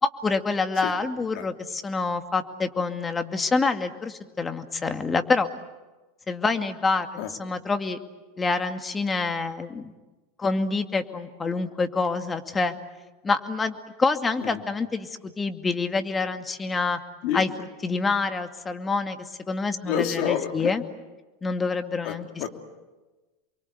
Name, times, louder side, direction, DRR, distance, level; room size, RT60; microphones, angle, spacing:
voice 1, 0.0-5.5 6.3-8.0 8.4-9.9 10.4-12.7 13.2-17.0 17.3-17.5 17.8-20.8 21.4-22.4, left 4 dB, 20° left, 7 dB, 2.2 m, -27 dB
voice 2, 19.9-20.7 22.0-22.5, left 9 dB, 60° left, 5 dB, 3.1 m, -28 dB
29.0 x 23.5 x 8.2 m, 1.2 s
hypercardioid pair, 95°, 0 cm